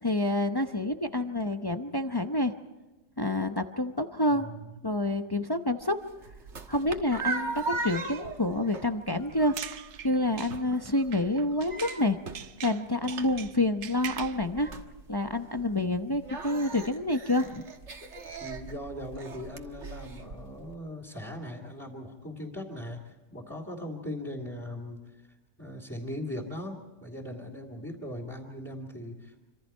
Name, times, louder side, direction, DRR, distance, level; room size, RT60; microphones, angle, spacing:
voice 1, 0.0-2.5 3.2-4.5 4.8-6.0 6.7-9.6 10.0-12.2 12.6-14.7 15.1-17.6, left 1 dB, 35° left, 6 dB, 0.4 m, -28 dB
voice 2, 4.2-4.6 18.4-25.0 25.6-29.5, left 1 dB, 10° left, -4 dB, 2.7 m, -39 dB
sound 1, 5.8-20.7, right 3 dB, 45° right, 1.7 m, -40 dB
sound 2, 9.3-12.1 12.3-14.4, right 9 dB, 60° right, 1.2 m, -42 dB
26.0 x 26.0 x 4.5 m, 1.1 s
omnidirectional pair, 1.8 m